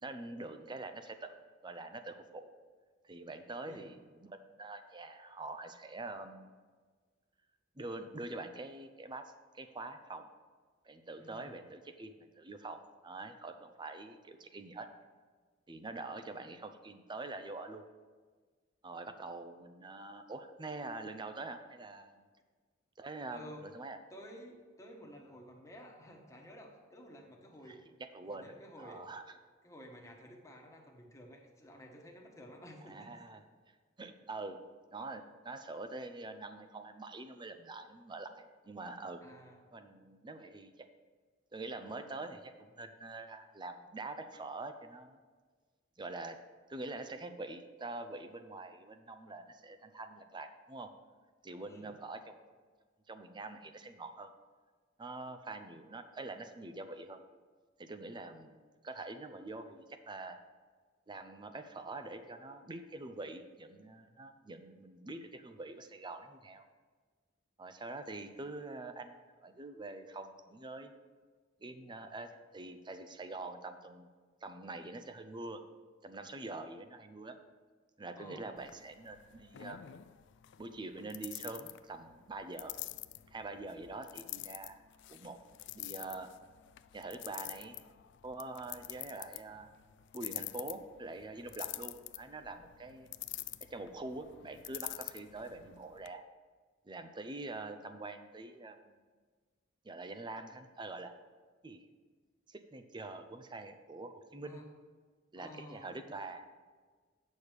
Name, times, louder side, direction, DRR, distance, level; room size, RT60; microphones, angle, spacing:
voice 1, 0.0-1.3 1.6-2.5 3.0-6.5 7.8-10.3 10.8-14.9 15.7-17.8 18.8-22.3 23.0-24.0 27.7-28.5 28.8-29.2 32.9-33.4 34.0-34.6 34.9-39.2 39.7-40.9 41.5-45.2 46.0-46.4 46.7-50.9 51.4-52.3 53.1-54.3 55.0-57.2 57.8-60.4 61.1-66.7 67.6-70.9 71.6-74.1 74.4-75.6 76.0-77.4 78.0-79.8 80.6-82.8 83.3-84.8 85.1-85.4 85.7-86.3 86.9-87.8 88.2-89.7 90.1-93.1 93.7-96.2 96.9-99.0 99.8-101.1 101.6-101.9 102.5-104.6 105.3-106.6, right 2 dB, 25° right, 9 dB, 0.6 m, -45 dB
voice 2, 11.2-11.5 23.3-23.6 24.1-27.8 28.2-29.1 29.6-33.1 39.2-39.6 51.6-51.9 78.2-78.5 104.4-104.7 105.3-105.9, equal, 15° left, 0 dB, 1.3 m, -52 dB
sound 1, 78.6-96.1, left 16 dB, 65° left, 0.3 m, -47 dB
8.8 x 6.3 x 5.0 m, 1.5 s
head